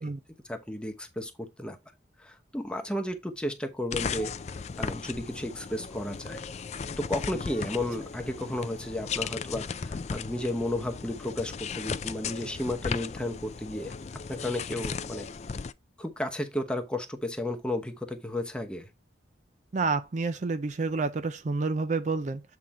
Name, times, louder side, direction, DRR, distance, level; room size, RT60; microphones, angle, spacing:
voice 1, 0.5-1.8 2.2-6.4 7.0-13.9 14.3-15.3 16.0-18.9, left 1 dB, 5° left, 0.9 m, -33 dB
sound 1, 3.9-15.7, left 5 dB, 35° left, 0.3 m, -36 dB
voice 2, 19.7-22.4, right 4 dB, 40° right, 0.4 m, -29 dB
7.6 x 3.8 x 4.2 m
head